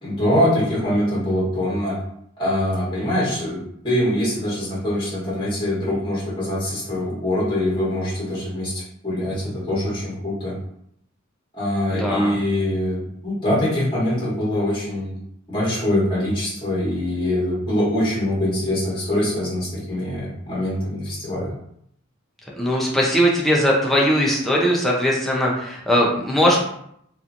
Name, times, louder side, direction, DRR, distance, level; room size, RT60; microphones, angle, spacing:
voice 1, 0.0-2.0 2.4-10.6 11.5-15.2 15.5-21.5, left 1 dB, 25° left, -7 dB, 1.2 m, -23 dB
voice 2, 11.9-12.3 22.5-26.6, equal, ahead, -3 dB, 0.5 m, -19 dB
2.9 x 2.5 x 2.5 m, 0.71 s
head